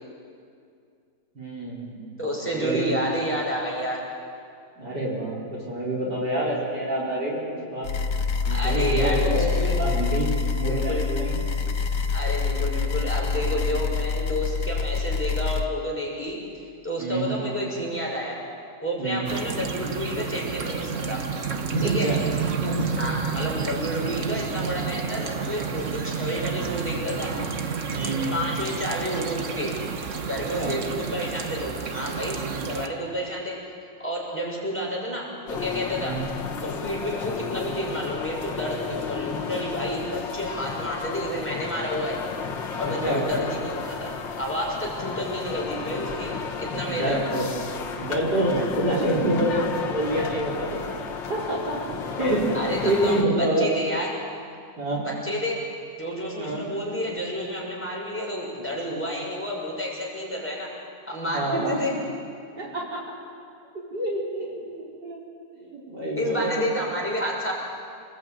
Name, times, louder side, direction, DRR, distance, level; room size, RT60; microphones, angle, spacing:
voice 1, 1.4-2.0 2.3-2.9 4.8-7.4 7.6-7.9 8.4-11.4 17.0-17.3 19.0-19.3 21.7-22.2 22.6-22.9 27.9-28.2 30.3-30.7 32.4-32.7 35.9-36.2 42.8-43.3 46.9-47.5 48.0-53.7 54.8-55.0 56.4-56.7 58.8-59.0 61.3-61.8 62.6-63.0 63.9-65.2 65.6-66.5, right 1 dB, 65° right, -5 dB, 5.5 m, -27 dB
voice 2, 2.2-4.0 8.5-9.7 10.6-11.1 12.1-16.4 16.8-18.4 18.8-21.2 21.8-22.1 23.0-27.3 28.3-29.8 30.2-33.6 34.0-36.2 36.6-42.2 42.7-47.2 52.5-54.1 55.0-55.6 56.0-60.7 61.1-61.9 66.2-67.5, equal, 5° left, -3 dB, 6.1 m, -30 dB
sound 1, 7.8-15.6, left 5 dB, 70° left, 1.6 m, -26 dB
sound 2, 19.2-32.9, right 6 dB, 45° right, 1.4 m, -30 dB
sound 3, 35.5-53.2, left 6 dB, 85° left, 2.2 m, -33 dB
28.0 x 20.0 x 8.9 m, 2.3 s
omnidirectional pair, 2.0 m